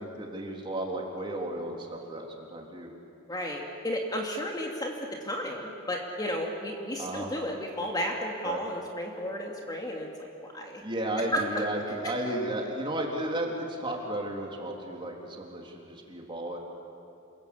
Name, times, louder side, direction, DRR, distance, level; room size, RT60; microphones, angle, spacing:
voice 1, 0.0-2.9 7.0-7.3 8.4-8.6 10.8-16.6, right 1 dB, 25° right, 0 dB, 3.5 m, -33 dB
voice 2, 3.3-4.9 5.2-10.8 11.3-11.6, equal, 20° left, 0 dB, 2.5 m, -33 dB
28.0 x 21.5 x 8.7 m, 2.7 s
head